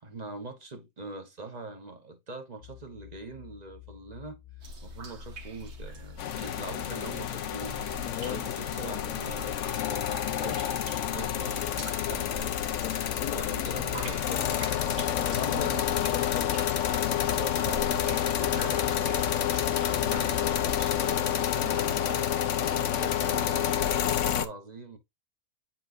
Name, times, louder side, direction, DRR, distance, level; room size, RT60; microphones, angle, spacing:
voice 1, 0.0-4.4 4.8-7.9 8.3-12.6 13.2-14.7 15.4-15.9 17.3-22.7 23.0-25.0, right 3 dB, 30° right, 0.9 m, -43 dB
sound 1, 2.6-21.0, left 14 dB, 45° left, 1.4 m, -45 dB
sound 2, 4.6-21.2, right 2 dB, 80° right, 1.8 m, -45 dB
sound 3, 6.2-24.5, left 10 dB, 60° left, 0.9 m, -29 dB
voice 2, 8.0-9.2 12.8-14.5 15.0-16.6, left 11 dB, 85° left, 1.1 m, -40 dB
9.2 x 4.2 x 2.5 m
omnidirectional pair, 1.6 m